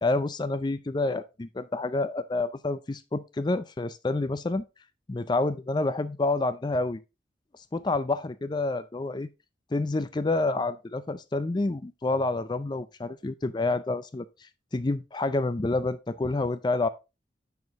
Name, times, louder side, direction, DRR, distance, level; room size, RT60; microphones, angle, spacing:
voice 1, 0.0-4.6 5.1-7.0 7.7-9.3 9.7-14.3 14.7-16.9, left 2 dB, 25° left, 0.4 m, -28 dB
7.0 x 6.2 x 3.5 m
head